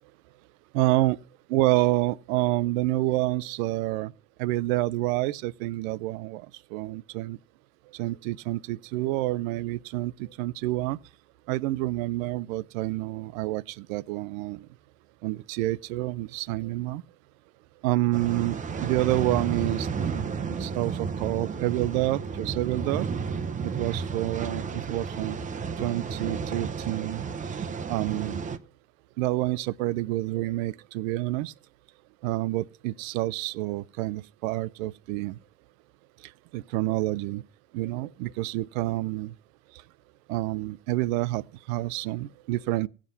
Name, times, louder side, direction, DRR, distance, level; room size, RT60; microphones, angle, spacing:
voice 1, 0.7-1.2 1.5-4.1 4.4-6.5 6.7-7.4 7.9-11.0 11.5-14.6 15.2-17.0 17.8-23.1 23.6-25.4 25.8-27.2 27.9-28.4 29.2-31.5 32.2-35.4 36.5-37.4 37.7-39.3 40.3-42.9, right 18 dB, 65° right, 0.6 m, -28 dB
sound 1, 18.1-28.6, right 5 dB, 15° right, 0.6 m, -32 dB
15.5 x 7.4 x 5.5 m
supercardioid pair, 110°, 45 cm